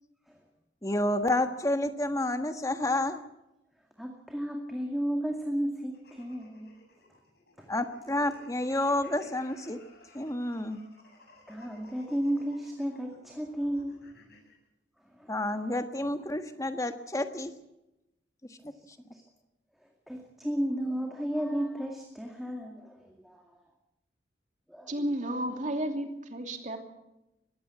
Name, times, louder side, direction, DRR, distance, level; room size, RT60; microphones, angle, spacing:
voice 1, 0.8-3.2 7.7-9.8 10.1-10.8 15.3-17.5 18.6-18.7, left 1 dB, 20° left, 8 dB, 1.5 m, -29 dB
voice 2, 4.0-6.7 7.6-7.7 11.5-14.0 15.1-15.6 18.6-18.7 19.1-19.2 19.8-23.6 24.7-24.9, equal, ahead, 1 dB, 2.1 m, -33 dB
sound 1, 5.9-14.6, left 2 dB, 60° left, 7.7 m, -56 dB
voice 3, 24.9-26.8, right 1 dB, 40° right, 5 dB, 2.9 m, -32 dB
21.0 x 16.0 x 8.3 m, 0.92 s
head